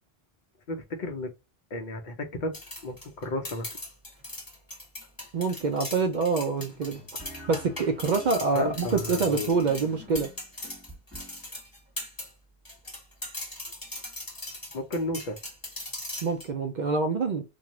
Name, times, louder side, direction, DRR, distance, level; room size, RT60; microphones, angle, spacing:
voice 1, 0.7-1.3 1.7-2.6 2.8-3.8 8.5-9.7 14.7-15.4, left 1 dB, 55° left, 0.7 m, -33 dB
sound 1, 2.5-12.3 12.6-16.5, left 1 dB, 20° left, 1.1 m, -39 dB
voice 2, 5.3-7.0 7.5-10.3 16.2-17.4, right 4 dB, 55° right, 0.5 m, -26 dB
sound 2, 6.6-11.4, equal, ahead, 1.3 m, -48 dB
2.6 x 2.3 x 2.8 m
omnidirectional pair, 1.1 m